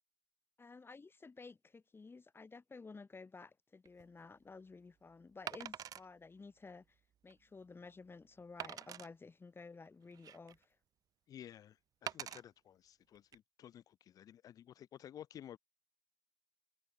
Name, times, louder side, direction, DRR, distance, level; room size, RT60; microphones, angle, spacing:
voice 1, 0.6-10.8, left 4 dB, 30° left, 6.6 m, -54 dB
Wood, 3.9-4.0 5.5-6.1 6.7-6.8 7.3-7.4 8.6-9.1 9.9-10.6 12.1-12.4 13.2-13.4, right 10 dB, 55° right, 1.3 m, -45 dB
voice 2, 11.3-15.6, left 10 dB, 55° left, 0.8 m, -54 dB
figure-of-eight pair, 45°, 7 cm